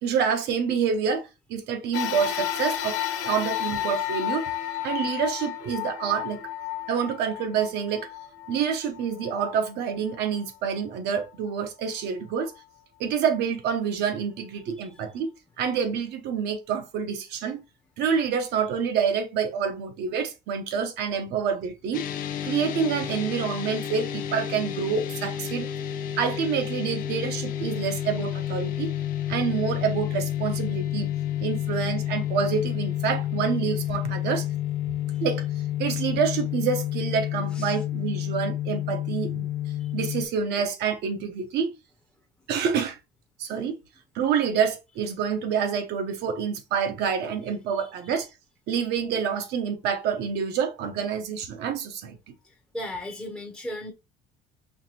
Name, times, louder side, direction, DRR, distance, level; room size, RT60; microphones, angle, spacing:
voice 1, 0.0-4.5 4.8-6.4 6.9-8.1 8.5-12.5 13.0-17.6 18.0-22.0 22.4-25.7 26.2-28.9 29.3-31.1 31.4-34.4 35.2-35.5 35.8-39.5 39.9-41.7 42.5-43.0 43.4-43.8 44.1-48.3 48.7-52.3, right 7 dB, 60° right, 0.9 m, -27 dB
sound 1, 1.9-10.5 11.2-11.3 12.4-12.5, left 12 dB, 75° left, 1.0 m, -32 dB
sound 2, 21.9-40.3, left 11 dB, 45° left, 0.7 m, -30 dB
voice 2, 52.7-53.9, left 1 dB, ahead, 0.7 m, -35 dB
4.8 x 3.2 x 2.8 m
cardioid pair, 170°, 19 cm